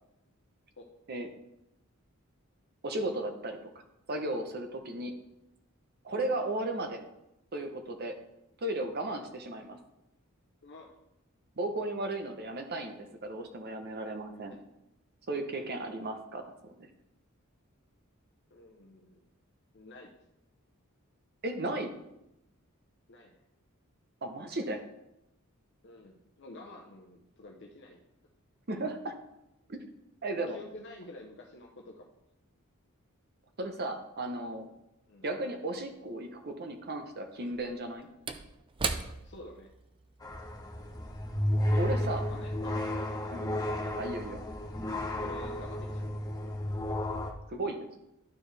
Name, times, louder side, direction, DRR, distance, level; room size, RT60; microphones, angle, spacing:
voice 1, 2.8-3.6 4.1-5.1 6.0-7.0 7.5-8.2 8.6-9.8 11.6-14.6 15.3-16.5 16.8-16.9 21.4-21.9 24.2-24.8 28.7-29.2 29.7-29.8 30.2-30.6 33.6-34.7 35.2-38.1 41.8-42.2 43.3-43.5 44.0-44.4 47.5-48.0, right 2 dB, 50° right, 6 dB, 0.8 m, -35 dB
voice 2, 18.5-19.3 19.7-20.1 23.1-23.4 25.8-28.0 30.3-32.1 35.1-35.3 39.2-39.7 41.7-42.7 43.0-43.4 45.1-46.1, left 2 dB, 55° left, 1 dB, 0.7 m, -49 dB
Slam / Wood, 35.8-35.9 37.4-42.1 42.4-42.5, right 4 dB, 25° right, 0.4 m, -40 dB
sound 1, 40.2-47.3, left 1 dB, 15° left, 0.9 m, -32 dB
11.5 x 4.6 x 3.3 m, 0.87 s
head